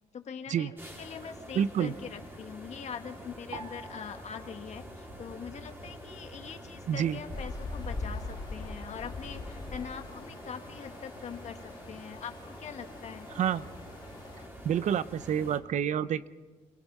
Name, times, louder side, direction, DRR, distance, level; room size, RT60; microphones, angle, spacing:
voice 1, 0.1-0.7 1.0-13.3, left 7 dB, 50° left, 6 dB, 1.8 m, -43 dB
sound 1, 0.8-15.6, equal, 15° right, 4.1 m, -47 dB
voice 2, 1.5-1.9 6.9-7.2 13.3-13.7 14.6-16.3, right 9 dB, 60° right, 16 dB, 0.7 m, -28 dB
sound 2, 3.5-6.0 6.3-7.2 7.8-8.2, right 3 dB, 35° right, 2.1 m, -50 dB
sound 3, 7.3-14.5, left 3 dB, 30° left, 2.7 m, -42 dB
27.5 x 17.5 x 5.5 m, 1.3 s
cardioid pair, 90°, 14 cm